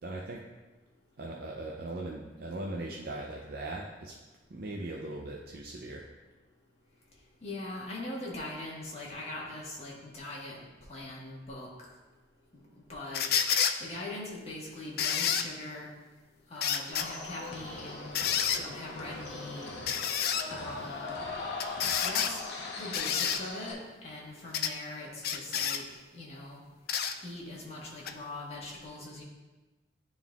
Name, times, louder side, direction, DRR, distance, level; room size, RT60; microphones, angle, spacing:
voice 1, 0.0-0.4 1.2-4.1 4.5-6.1, right 2 dB, 60° right, -1 dB, 0.5 m, -39 dB
voice 2, 7.4-10.6 10.9-11.7 12.9-13.3 13.8-15.9 16.5-18.1 18.6-19.7 20.4-21.2 22.0-22.4 22.8-26.6 27.2-29.2, left 2 dB, 40° left, -4 dB, 1.4 m, -41 dB
sound 1, 13.1-13.8 15.0-15.5 16.6-17.1 18.2-18.6 19.9-20.5 21.6-22.3 22.9-23.4 24.5-24.7 25.2-25.8 26.9-27.2 28.1-28.2, left 8 dB, 60° left, 0.4 m, -29 dB
sound 2, 16.9-23.7, left 3 dB, 75° left, 0.8 m, -40 dB
11.0 x 3.8 x 2.4 m, 1.2 s
head